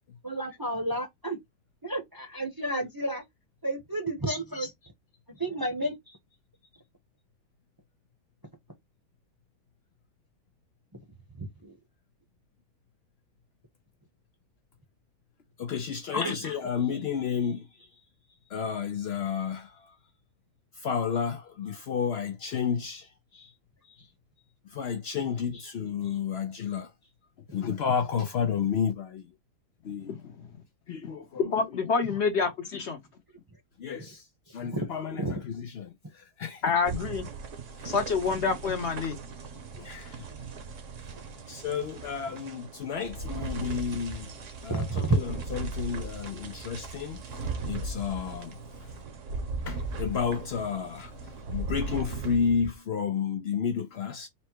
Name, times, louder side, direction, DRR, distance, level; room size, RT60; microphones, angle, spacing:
voice 1, 0.2-1.4 1.8-3.2 3.6-4.7 5.4-5.9 10.9-11.0 11.4-11.7 16.1-16.7 34.6-34.7 35.2-35.3 44.7-45.2, right 1 dB, 20° right, 0.7 m, -30 dB
voice 2, 15.6-17.9 18.5-19.9 20.8-23.5 24.7-26.9 27.5-29.3 29.8-30.2 30.9-31.4 33.8-36.6 37.8-37.9 39.8-40.2 41.5-44.3 44.6-48.9 49.7-54.3, left 7 dB, 80° left, 0.5 m, -31 dB
voice 3, 30.1-30.5 31.5-33.0 36.6-37.3 37.8-39.2, left 5 dB, 50° left, 1.0 m, -27 dB
sound 1, 36.8-52.8, right 3 dB, 55° right, 1.2 m, -38 dB
4.3 x 2.1 x 4.4 m
omnidirectional pair, 1.7 m